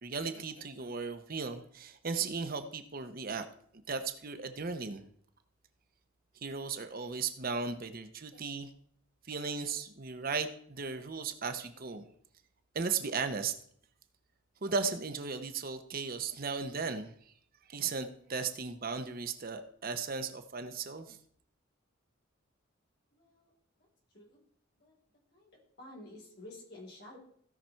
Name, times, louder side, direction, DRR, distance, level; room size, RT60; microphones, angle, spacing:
voice 1, 0.0-3.4 3.9-5.0 6.4-8.7 9.3-12.1 12.7-13.5 14.6-17.1 17.7-21.2, right 5 dB, 45° right, 9 dB, 0.7 m, -36 dB
voice 2, 23.1-23.5 23.8-23.9 24.1-24.4 24.8-24.9 25.3-27.2, left 1 dB, 50° left, -2 dB, 4.1 m, -51 dB
16.0 x 5.9 x 4.4 m, 0.62 s
head